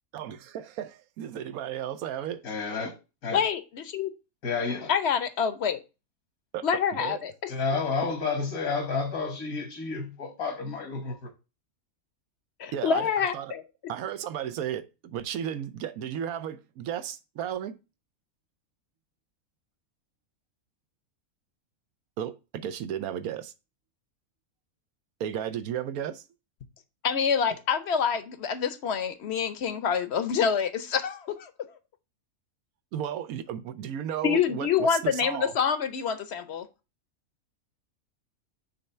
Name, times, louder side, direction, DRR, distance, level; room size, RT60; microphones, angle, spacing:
voice 1, 0.1-2.4 6.5-6.6 6.9-7.2 12.7-13.5 13.9-17.7 22.2-23.5 25.2-26.2 32.9-35.6, right 9 dB, 80° right, 1.1 m, -34 dB
voice 2, 2.4-2.9 3.2-3.4 4.4-4.9 7.5-11.3, left 4 dB, 85° left, 1.8 m, -30 dB
voice 3, 3.3-4.1 4.9-5.8 6.6-7.5 12.6-13.6 27.0-31.5 34.2-36.7, left 7 dB, 55° left, 0.9 m, -27 dB
6.5 x 3.4 x 5.5 m
omnidirectional pair, 1.5 m